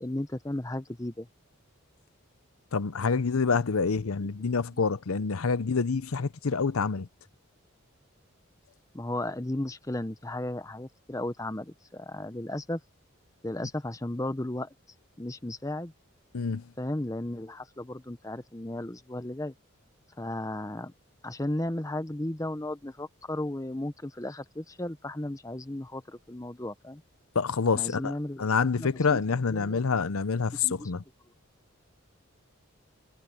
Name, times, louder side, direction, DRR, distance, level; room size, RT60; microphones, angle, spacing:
voice 1, 0.0-1.3 4.2-4.3 8.9-12.8 13.4-14.7 15.2-15.9 16.8-19.5 20.2-20.9 21.2-27.0 27.7-29.2 29.5-29.9 30.6-30.9, left 1 dB, 15° left, 0.8 m, -35 dB
voice 2, 2.7-7.1 16.3-16.6 27.3-28.1 28.4-31.0, left 5 dB, 80° left, 0.7 m, -27 dB
head